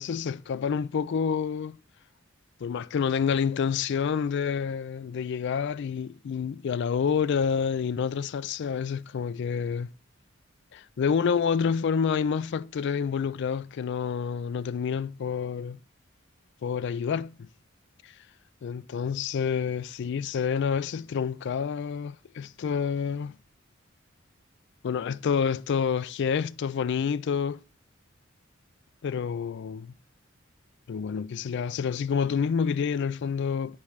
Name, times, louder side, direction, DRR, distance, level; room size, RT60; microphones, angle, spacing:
voice 1, 0.0-1.8 2.6-9.9 10.7-15.8 16.6-17.5 18.0-18.1 18.6-23.4 24.8-27.6 29.0-29.9 30.9-33.8, left 6 dB, 60° left, 0.3 m, -28 dB
8.2 x 3.3 x 5.0 m
head